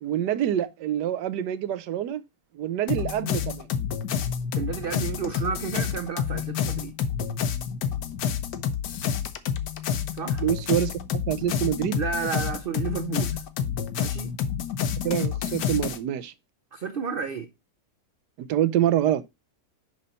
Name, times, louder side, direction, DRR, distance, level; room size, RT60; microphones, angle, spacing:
voice 1, 0.0-2.2 2.5-3.7 10.4-12.0 15.0-16.3 18.5-19.2, right 11 dB, 85° right, 1.3 m, -26 dB
sound 1, 2.9-16.0, left 8 dB, 85° left, 1.5 m, -29 dB
voice 2, 4.6-6.9 10.1-10.4 12.0-13.5 14.0-14.4 16.7-17.5, right 6 dB, 70° right, 0.5 m, -31 dB
6.4 x 5.5 x 4.0 m
omnidirectional pair, 1.8 m